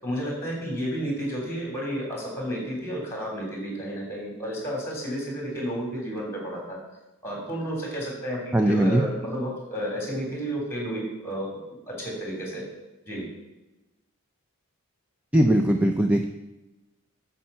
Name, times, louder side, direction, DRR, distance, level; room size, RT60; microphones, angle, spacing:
voice 1, 0.0-6.8 7.2-11.5 11.9-12.6 13.0-13.2, equal, 10° left, -2 dB, 3.3 m, -31 dB
voice 2, 8.5-9.0 15.3-16.2, right 1 dB, 5° right, 5 dB, 0.4 m, -20 dB
8.9 x 7.2 x 5.6 m, 1.1 s
head